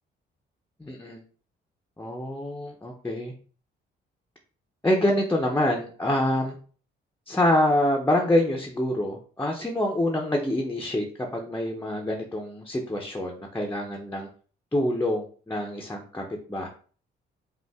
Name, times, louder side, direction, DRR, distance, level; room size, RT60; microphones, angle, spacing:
voice 1, 0.8-1.2 2.0-3.3 4.8-6.6 7.3-11.0 11.3-14.3 14.7-16.2 16.5-16.7, left 1 dB, 10° left, 0 dB, 0.7 m, -26 dB
5.2 x 2.5 x 3.5 m, 0.42 s
cardioid pair, 90°, 20 cm